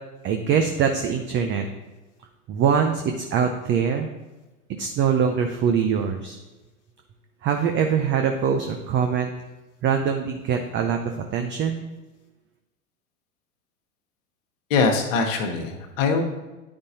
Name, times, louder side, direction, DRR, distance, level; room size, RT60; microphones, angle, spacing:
voice 1, 0.2-1.7 2.5-4.1 4.8-6.4 7.4-9.3 9.8-11.9, right 7 dB, 25° right, 5 dB, 0.5 m, -23 dB
voice 2, 14.7-16.2, left 4 dB, 60° left, 2 dB, 1.2 m, -22 dB
9.7 x 5.1 x 2.8 m, 1.1 s
hypercardioid pair, 90°, 43 cm